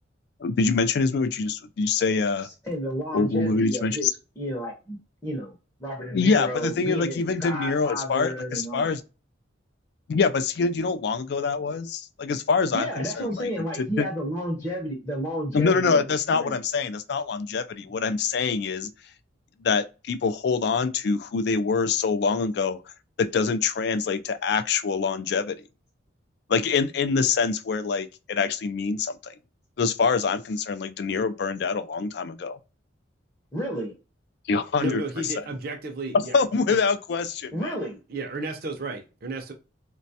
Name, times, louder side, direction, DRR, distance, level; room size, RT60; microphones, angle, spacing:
voice 1, 0.4-2.5 3.1-4.1 6.1-9.0 10.1-13.5 13.8-14.1 15.5-18.9 19.6-22.8 23.2-25.5 26.5-29.3 29.8-32.6 34.5-35.0 36.1-37.7, left 4 dB, 55° left, 0.3 m, -25 dB
voice 2, 2.6-8.9 12.7-16.0 16.3-16.6 33.5-33.9 37.5-38.0, equal, 15° left, 0.6 m, -32 dB
voice 3, 34.8-36.4 36.7-36.8 38.1-39.5, right 2 dB, 50° right, 0.5 m, -33 dB
4.0 x 2.2 x 2.7 m
head